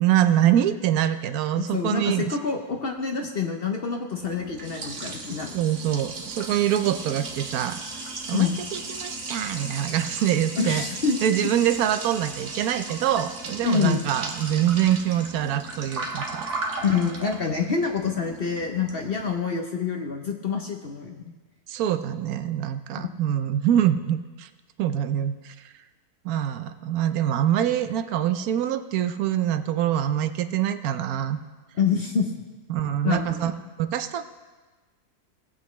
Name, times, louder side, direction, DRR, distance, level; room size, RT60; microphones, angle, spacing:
voice 1, 0.0-2.4 5.5-7.8 8.3-10.9 11.2-16.8 21.7-24.5 24.8-25.5 26.2-31.4 32.7-33.5 33.8-34.2, right 11 dB, 75° right, 11 dB, 1.0 m, -24 dB
voice 2, 1.6-5.6 8.3-8.5 10.6-11.2 13.6-14.1 16.8-21.3 23.0-23.1 31.8-32.3 33.0-33.4, left 5 dB, 50° left, 3 dB, 0.8 m, -26 dB
Liquid, 4.2-19.3, right 3 dB, 55° right, 1.3 m, -36 dB
19.0 x 7.9 x 3.1 m, 1.3 s
omnidirectional pair, 1.6 m